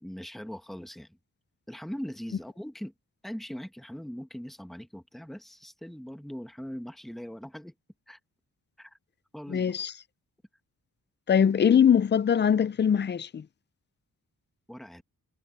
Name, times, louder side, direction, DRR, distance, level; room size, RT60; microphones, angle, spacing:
voice 1, 0.0-1.2 1.7-2.9 3.2-7.7 8.1-8.2 8.8-9.0 9.3-9.7 14.7-15.0, equal, ahead, 1.4 m, -40 dB
voice 2, 9.5-9.9 11.3-13.4, left 8 dB, 30° left, 0.4 m, -22 dB
wide cardioid pair, 105°, 37 cm